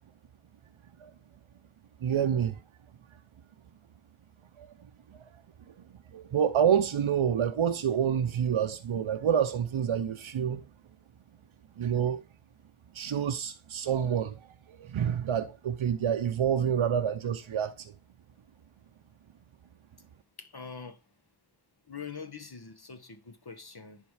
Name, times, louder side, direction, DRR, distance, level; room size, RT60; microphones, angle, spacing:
voice 1, 2.0-2.6 4.6-4.7 6.1-10.6 11.8-12.2 12.9-14.4 14.7-17.9, right 8 dB, 80° right, 0.7 m, -28 dB
voice 2, 20.4-21.0 21.9-24.0, left 5 dB, 50° left, 1.3 m, -43 dB
10.5 x 3.7 x 4.8 m
wide cardioid pair, 40°, 48 cm